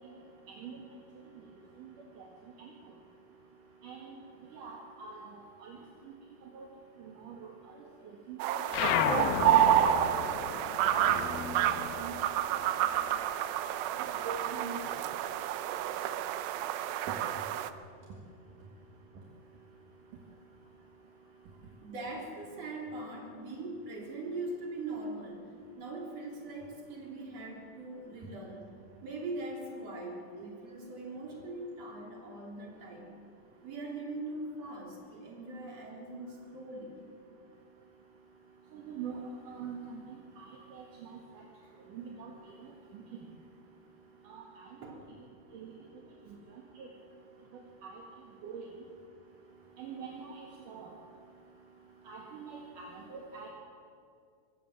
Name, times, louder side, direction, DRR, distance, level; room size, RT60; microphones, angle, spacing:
voice 1, 3.8-4.2 4.5-5.8 6.5-6.7 7.2-7.4 8.3-8.6 11.7-12.1 14.0-14.8 38.7-39.2 39.5-40.0 40.4-41.2 41.9-42.3 42.9-43.0 44.3-44.6 45.5-45.7 46.8-46.9 47.8-48.0 48.4-48.6 49.8-50.9 52.1-53.5, right 6 dB, 65° right, -1 dB, 3.3 m, -44 dB
sound 1, 8.4-17.7, right 12 dB, 85° right, 2.6 m, -29 dB
sound 2, 8.7-13.6 13.9-15.3, left 9 dB, 85° left, 2.8 m, -34 dB
voice 2, 16.4-16.8 21.8-28.7 29.0-33.1 33.6-37.0 44.8-45.0 45.7-45.9, right 2 dB, 45° right, -1 dB, 4.5 m, -42 dB
23.5 x 16.0 x 7.6 m, 2.4 s
omnidirectional pair, 4.1 m